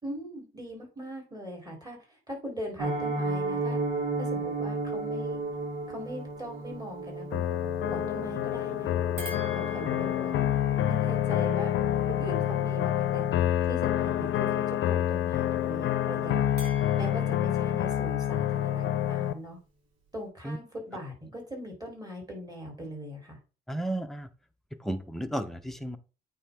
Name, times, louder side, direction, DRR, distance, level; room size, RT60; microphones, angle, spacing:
voice 1, 0.0-3.8 4.2-5.4 5.9-7.4 7.9-9.0 9.5-10.5 10.9-11.7 12.1-13.3 13.7-16.4 16.9-19.6 20.1-23.4, equal, 20° right, 0 dB, 3.7 m, -40 dB
Piano, 2.8-13.7 14.0-14.2 14.5-14.6 15.0-15.2 15.6-15.7, right 3 dB, 85° right, 3.0 m, -35 dB
sound 1, 7.3-19.3, left 11 dB, 75° left, 0.6 m, -27 dB
sound 2, 9.2-13.7 16.6-19.1, left 2 dB, 55° right, 3.3 m, -45 dB
voice 2, 23.7-24.3 24.8-26.0, right 1 dB, ahead, 7 dB, 0.7 m, -33 dB
8.7 x 4.2 x 3.6 m, 0.35 s
cardioid pair, 90°, 20 cm